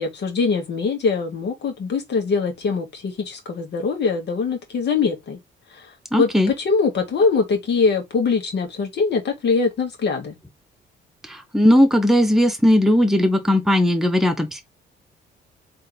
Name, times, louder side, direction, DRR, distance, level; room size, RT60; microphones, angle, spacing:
voice 1, 0.0-5.4 5.7-10.4, left 4 dB, 60° left, 2.0 m, -23 dB
voice 2, 6.1-6.5 11.5-14.6, left 1 dB, ahead, 1.2 m, -17 dB
3.8 x 3.5 x 3.4 m
cardioid pair, 90°, 20 cm